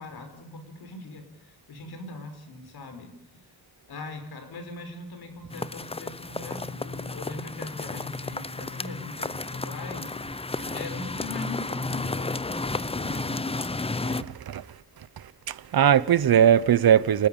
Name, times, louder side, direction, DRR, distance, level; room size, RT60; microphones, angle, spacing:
voice 1, 0.0-3.1 3.9-10.1 10.7-13.8, left 2 dB, 90° left, 5.1 m, -40 dB
sound 1, 5.5-14.2, left 3 dB, 15° left, 0.7 m, -32 dB
voice 2, 15.5-17.3, right 9 dB, 75° right, 1.0 m, -19 dB
30.0 x 14.0 x 7.1 m
wide cardioid pair, 110°, 37 cm